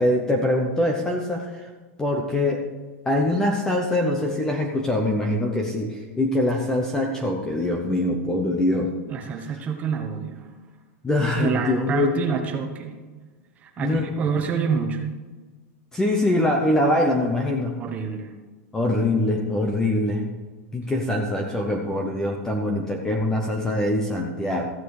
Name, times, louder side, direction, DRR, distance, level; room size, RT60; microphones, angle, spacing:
voice 1, 0.0-1.7 2.0-2.6 3.0-8.9 11.0-12.2 13.8-14.1 15.9-17.8 18.7-20.2 20.7-24.7, left 1 dB, 5° left, 2 dB, 0.8 m, -23 dB
voice 2, 9.1-10.5 11.4-13.0 13.6-15.0 17.8-18.3, right 6 dB, 20° right, 4 dB, 1.2 m, -27 dB
14.5 x 9.7 x 4.9 m, 1.3 s
supercardioid pair, 175°, 8 cm